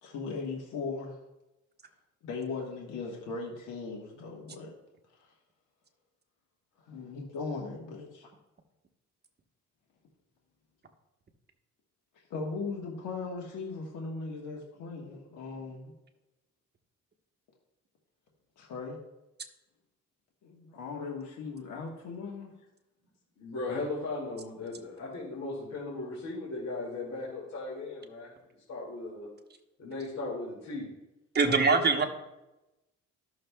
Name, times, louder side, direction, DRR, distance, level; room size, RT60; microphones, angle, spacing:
voice 1, 0.0-1.2 2.2-4.7 5.1-5.3 6.8-8.3 12.3-15.9 18.6-19.0 20.4-22.5, left 4 dB, 80° left, -1 dB, 1.3 m, -38 dB
voice 2, 23.4-28.4 28.7-29.3 29.8-30.9 31.4-31.8, left 2 dB, 60° left, -6 dB, 2.3 m, -37 dB
voice 3, 31.3-32.0, right 4 dB, 35° right, 4 dB, 1.1 m, -23 dB
13.5 x 6.4 x 2.3 m, 0.97 s
cardioid pair, 90°, 30 cm